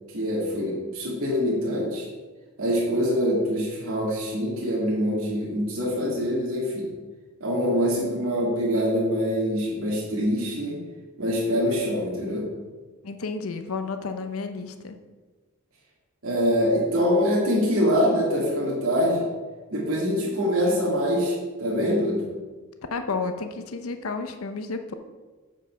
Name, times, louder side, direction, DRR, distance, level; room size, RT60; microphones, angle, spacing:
voice 1, 0.1-2.1 2.6-6.9 7.4-10.8 11.2-12.5 16.2-19.3 19.7-22.3, equal, 75° right, -5 dB, 2.3 m, -24 dB
voice 2, 13.0-15.0 22.9-24.9, left 4 dB, 80° left, 7 dB, 0.7 m, -31 dB
8.9 x 5.4 x 5.9 m, 1.3 s
head